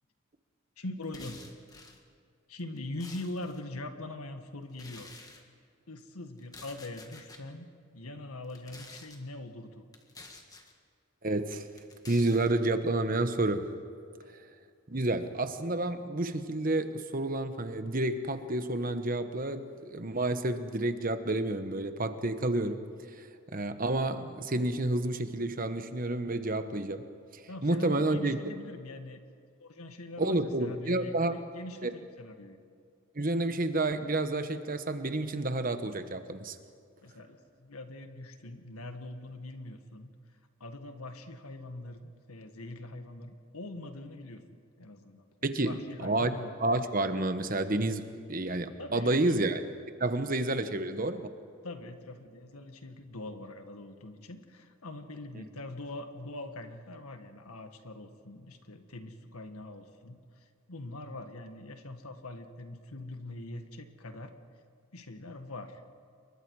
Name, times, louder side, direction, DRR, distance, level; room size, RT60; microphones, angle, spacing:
voice 1, 0.8-1.5 2.5-5.1 5.9-7.7 7.9-9.9 14.2-14.4 27.5-29.2 29.6-32.6 37.0-40.1 40.6-42.0 42.3-44.4 44.8-46.5 48.8-49.4 51.6-64.3 64.9-65.8, left 2 dB, 90° left, 7 dB, 1.8 m, -43 dB
sound 1, 1.0-2.0 2.6-3.6 4.7-5.4 6.4-7.4 8.4-9.2 9.9-10.7 11.5-12.5, left 3 dB, 15° left, 1.7 m, -50 dB
voice 2, 11.2-11.7 12.1-13.7 14.9-22.8 23.5-27.0 27.3-28.4 30.2-31.3 31.8-31.9 33.1-36.6 45.4-45.7 46.0-46.3 46.6-49.6 50.0-51.3, right 2 dB, 40° right, 9 dB, 1.1 m, -30 dB
28.0 x 23.0 x 4.8 m, 2.3 s
head